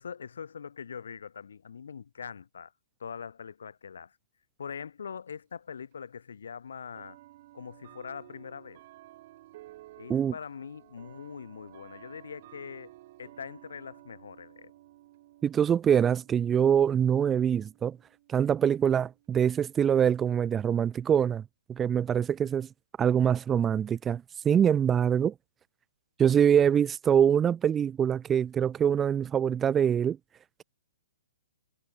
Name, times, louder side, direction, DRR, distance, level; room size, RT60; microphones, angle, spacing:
voice 1, 0.0-2.7 3.0-4.2 4.6-7.2 7.5-8.8 10.0-12.9 13.2-14.7, left 6 dB, 70° left, 6.3 m, -42 dB
sound 1, 4.7-4.8 5.9-6.0 6.9-20.2, right 16 dB, 45° right, 6.5 m, -54 dB
voice 2, 15.4-18.0 18.3-21.4 21.7-22.7 23.0-25.3 26.2-30.2, right 8 dB, 15° right, 0.5 m, -24 dB
figure-of-eight pair, 130°, 0 cm